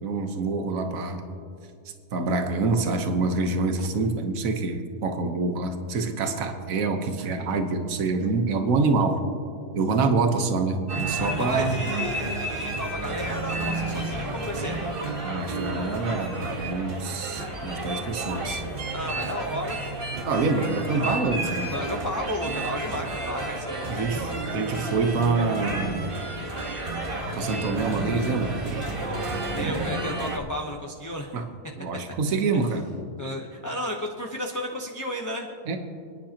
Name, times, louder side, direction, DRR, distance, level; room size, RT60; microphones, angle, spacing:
voice 1, 0.0-1.2 2.1-9.2 9.7-11.8 15.2-18.6 20.3-21.7 23.9-26.1 27.3-28.5 29.6-29.8 31.3-31.4 31.8-32.9 35.7-35.8, right 3 dB, 60° right, 6 dB, 1.4 m, -26 dB
sound 1, 10.9-30.4, right 2 dB, 35° right, 1.5 m, -31 dB
voice 2, 11.2-14.8 18.9-20.0 20.7-21.2 21.7-24.3 29.5-31.3 33.2-35.5, equal, 15° left, 0 dB, 0.7 m, -33 dB
30.0 x 10.5 x 2.9 m, 2.3 s
omnidirectional pair, 1.7 m